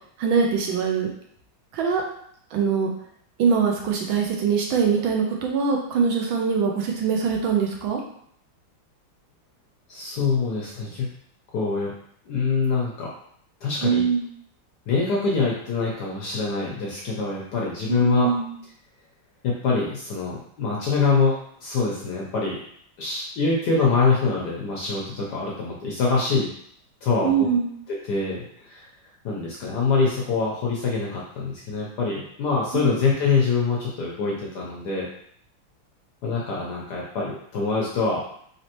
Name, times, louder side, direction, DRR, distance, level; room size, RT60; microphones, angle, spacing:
voice 1, 0.2-1.1 1.7-2.0 2.5-2.9 3.4-8.0 13.8-14.3 17.9-18.5 27.2-27.7 32.7-32.9, right 6 dB, 70° right, 1 dB, 1.4 m, -23 dB
voice 2, 9.9-11.1 11.5-11.9 12.3-13.1 13.6-14.0 14.9-18.3 19.4-22.6 23.0-26.5 27.0-27.5 27.9-28.9 29.2-35.1 36.2-38.2, left 4 dB, 70° left, -3 dB, 1.0 m, -24 dB
4.1 x 3.3 x 2.9 m, 0.67 s
omnidirectional pair, 2.4 m